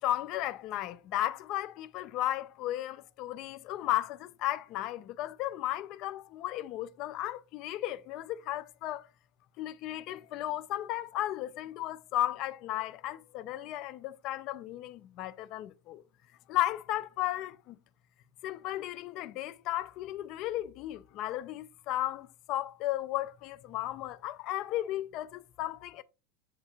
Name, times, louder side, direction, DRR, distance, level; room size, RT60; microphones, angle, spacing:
voice 1, 0.0-9.1 9.6-16.0 16.5-17.8 18.4-26.0, left 14 dB, 45° left, 0.3 m, -34 dB
7.2 x 2.7 x 2.4 m
figure-of-eight pair, 85°, 0 cm